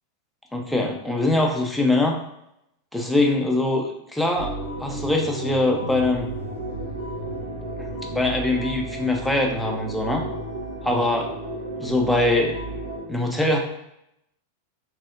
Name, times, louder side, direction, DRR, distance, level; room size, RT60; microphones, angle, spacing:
voice 1, 0.5-2.2 2.9-6.3 8.1-10.2 10.8-11.3 11.8-12.5 13.1-13.6, left 2 dB, 5° left, 1 dB, 0.4 m, -22 dB
sound 1, 4.4-13.0, right 1 dB, 70° right, 0.7 m, -33 dB
3.6 x 2.0 x 2.4 m, 0.80 s
figure-of-eight pair, 90°, 0 cm